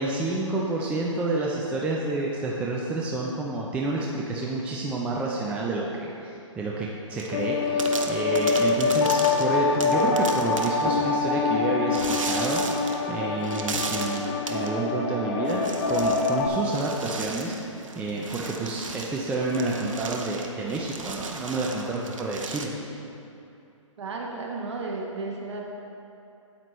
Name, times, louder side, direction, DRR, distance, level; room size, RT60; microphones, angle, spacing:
voice 1, 0.0-17.5 17.9-22.7, right 2 dB, 5° right, -3 dB, 0.4 m, -29 dB
sound 1, 7.2-7.5 7.8-10.9 11.9-13.1 13.4-14.7 15.4-16.4 16.7-22.7, right 4 dB, 75° right, 0.8 m, -36 dB
sound 2, 7.3-16.5, left 4 dB, 45° left, 0.7 m, -25 dB
voice 2, 24.0-25.7, right 3 dB, 60° right, -1 dB, 1.2 m, -34 dB
9.0 x 7.8 x 3.1 m, 2.7 s
hypercardioid pair, 135°, 17 cm